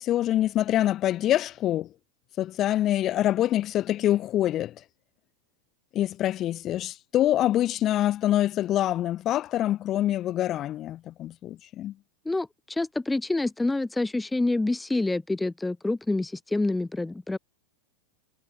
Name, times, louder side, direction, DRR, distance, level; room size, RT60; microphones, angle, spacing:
voice 1, 0.0-1.9 2.4-4.8 5.9-11.9, left 13 dB, 30° left, 1.5 m, -25 dB
voice 2, 12.3-17.4, left 2 dB, 5° left, 0.9 m, -27 dB
figure-of-eight pair, 90°, 0 cm